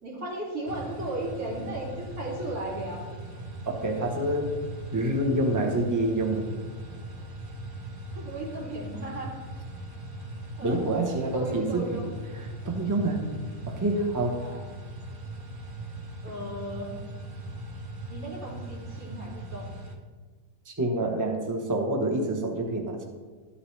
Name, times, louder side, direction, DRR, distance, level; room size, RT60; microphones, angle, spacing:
voice 1, 0.0-3.1 8.1-9.3 10.6-10.8 11.3-12.1 14.4-14.7 16.2-16.9 18.1-19.7, right 1 dB, 70° right, -4 dB, 3.1 m, -35 dB
sound 1, 0.7-19.9, right 1 dB, 40° right, 1.1 m, -40 dB
voice 2, 3.6-4.6 4.9-6.5 10.6-12.0 12.6-13.2 13.7-14.4 20.6-23.0, right 1 dB, 15° right, 2 dB, 0.9 m, -27 dB
12.5 x 8.4 x 3.3 m, 1.5 s
omnidirectional pair, 1.6 m